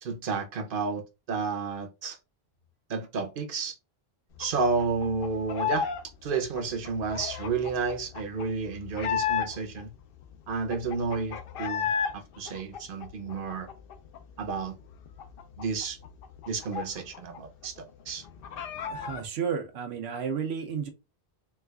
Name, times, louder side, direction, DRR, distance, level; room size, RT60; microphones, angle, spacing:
voice 1, 0.0-1.0 1.3-2.2 2.9-3.8 4.4-5.9 6.2-9.9 10.5-13.7 14.4-14.8 15.6-16.0 16.5-18.2, right 4 dB, 60° right, 0.8 m, -31 dB
sound 1, 4.4-6.0 6.3-9.8 10.2-10.3 10.5-12.1 12.5-14.2 14.5-14.6 14.9-17.4 17.6-17.7 18.1-19.2, left 8 dB, 70° left, 0.7 m, -33 dB
voice 2, 18.7-20.9, right 7 dB, 90° right, 0.9 m, -32 dB
4.5 x 2.4 x 2.2 m
omnidirectional pair, 1.0 m